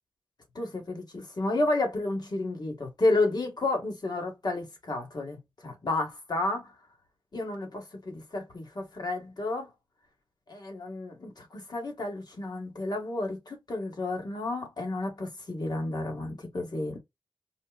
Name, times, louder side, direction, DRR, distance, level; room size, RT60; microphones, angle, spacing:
voice 1, 0.6-6.7 7.3-9.7 10.5-17.0, left 2 dB, 50° left, 1.8 m, -31 dB
4.3 x 2.3 x 2.4 m
cardioid pair, 60°, 9 cm